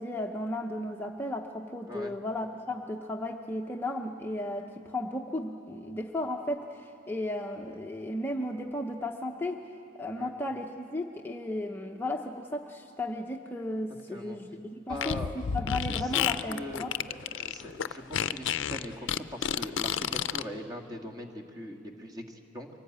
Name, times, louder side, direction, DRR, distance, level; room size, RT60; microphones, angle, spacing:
voice 1, 0.0-9.6 9.9-16.9, left 1 dB, 10° left, 1 dB, 0.7 m, -35 dB
Fart, 14.9-20.4, left 8 dB, 70° left, 0.5 m, -30 dB
voice 2, 14.9-15.3 15.9-22.7, left 1 dB, 20° right, 2 dB, 1.8 m, -41 dB
24.0 x 17.5 x 8.7 m, 2.6 s
head